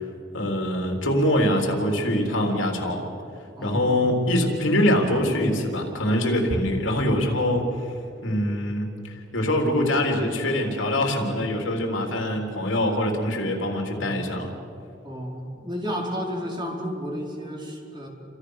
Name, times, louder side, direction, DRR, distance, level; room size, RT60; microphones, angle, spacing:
voice 1, 0.3-3.0 3.6-7.9 8.2-14.5, left 1 dB, 80° left, 2 dB, 3.6 m, -24 dB
voice 2, 3.5-4.1 13.9-14.1 15.0-18.1, equal, 25° right, -1 dB, 4.9 m, -32 dB
29.5 x 26.5 x 6.6 m, 2.7 s
head